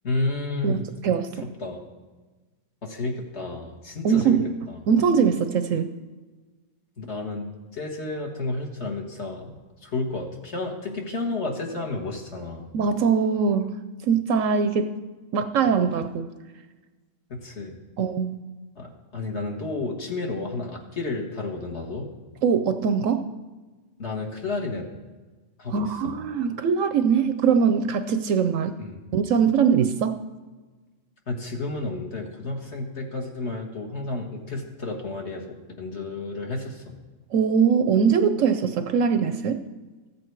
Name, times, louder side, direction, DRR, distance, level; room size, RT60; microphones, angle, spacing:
voice 1, 0.0-0.8 1.6-1.8 2.8-4.4 4.7-4.8 7.0-7.5 7.7-9.5 9.8-12.7 17.3-17.8 18.8-22.1 24.0-24.9 25.6-26.2 28.8-29.0 31.3-36.9, left 2 dB, 50° left, 1 dB, 1.7 m, -31 dB
voice 2, 0.6-1.5 4.0-4.5 4.9-5.9 12.7-13.7 14.0-15.0 15.3-16.3 18.0-18.4 22.4-23.3 25.7-28.8 29.1-30.2 37.3-39.6, right 6 dB, 70° right, 9 dB, 0.9 m, -22 dB
14.5 x 7.8 x 4.6 m, 1.3 s
omnidirectional pair, 1.6 m